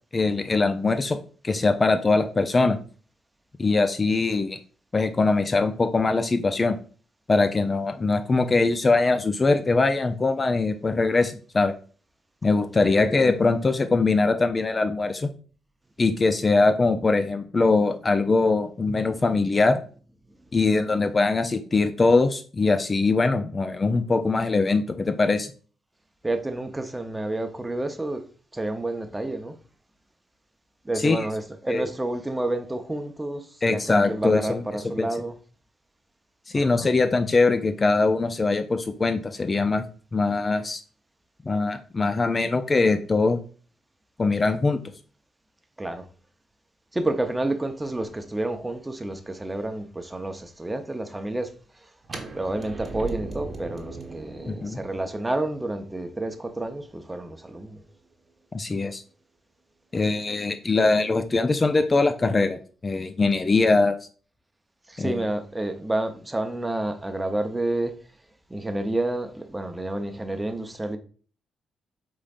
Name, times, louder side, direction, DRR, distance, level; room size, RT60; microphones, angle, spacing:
voice 1, 0.1-1.2 1.4-2.8 3.6-4.6 4.9-6.8 7.3-11.7 12.4-15.3 16.0-19.8 20.5-25.5 31.0-31.3 31.7-31.9 33.6-34.6 35.0-35.1 36.5-39.9 40.1-40.8 41.5-43.4 44.2-44.8 54.4-54.8 58.5-59.0 59.9-62.6 62.8-64.0 65.0-65.2, left 3 dB, 35° left, 0.5 m, -22 dB
voice 2, 12.8-13.2 26.2-28.2 28.5-29.6 30.8-35.3 36.5-36.9 45.8-46.1 46.9-51.5 52.3-57.8 64.9-67.9 68.5-71.0, right 2 dB, 15° right, 0.7 m, -29 dB
sound 1, 52.0-57.9, right 3 dB, 40° right, 1.0 m, -39 dB
5.0 x 3.7 x 2.5 m
hypercardioid pair, 45°, 0 cm